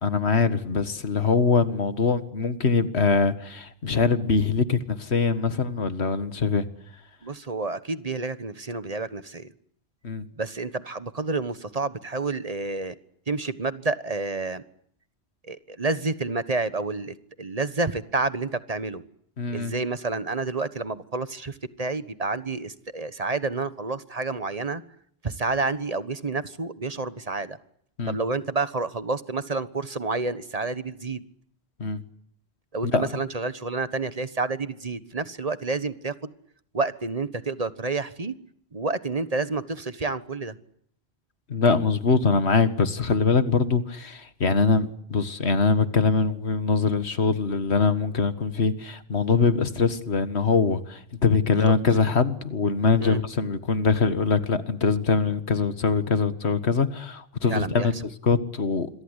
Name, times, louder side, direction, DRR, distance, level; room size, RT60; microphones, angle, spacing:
voice 1, 0.0-6.7 10.0-10.3 19.4-19.7 28.0-28.2 31.8-32.0 32.8-33.0 41.5-58.9, left 4 dB, 90° left, 2.0 m, -23 dB
voice 2, 7.2-9.5 10.4-12.9 13.3-14.6 15.4-19.0 19.5-24.8 25.2-27.6 28.1-31.2 32.7-36.3 36.7-38.3 38.7-40.5 51.6-51.7 53.0-53.2 57.5-57.9, right 3 dB, 35° right, 1.4 m, -29 dB
26.5 x 23.0 x 8.2 m
omnidirectional pair, 1.1 m